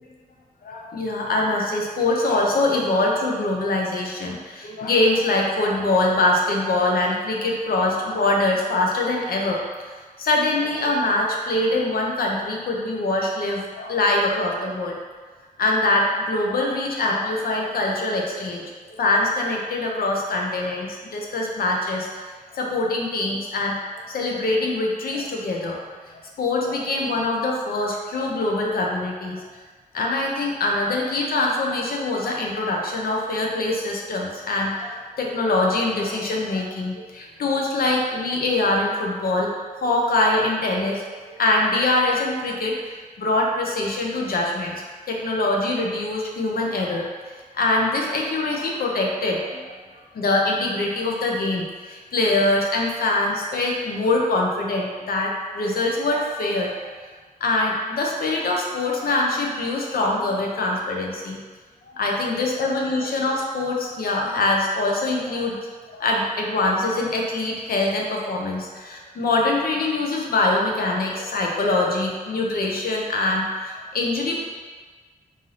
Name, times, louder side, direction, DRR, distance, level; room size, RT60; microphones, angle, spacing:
voice 1, 0.6-14.9 15.6-18.6 19.0-22.1 22.5-23.8 24.1-25.8 26.1-29.4 29.9-39.5 39.8-41.0 41.4-42.7 43.2-47.0 47.3-56.9 57.4-61.4 61.8-65.6 65.9-74.4, left 2 dB, 85° left, -1 dB, 0.6 m, -23 dB
3.3 x 2.6 x 3.7 m, 1.4 s
cardioid pair, 75°, 15 cm